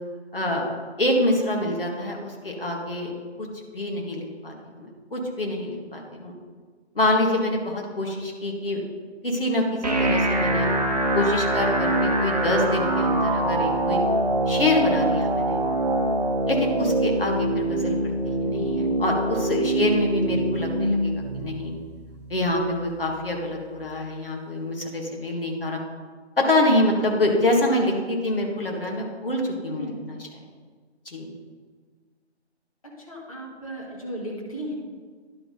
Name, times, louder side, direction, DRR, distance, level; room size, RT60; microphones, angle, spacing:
voice 1, 0.3-0.6 1.0-3.1 3.4-3.5 3.7-6.3 7.0-8.8 9.2-10.7 11.1-14.0 14.5-15.6 16.5-21.7 22.3-25.8 26.4-30.3 31.1-31.3, left 1 dB, 55° left, 0 dB, 1.7 m, -26 dB
Long Drop, 9.8-23.8, right 1 dB, 35° right, 0.9 m, -24 dB
voice 2, 33.1-34.7, equal, 30° left, -3 dB, 1.6 m, -35 dB
10.5 x 6.0 x 3.9 m, 1.5 s
figure-of-eight pair, 160°, 34 cm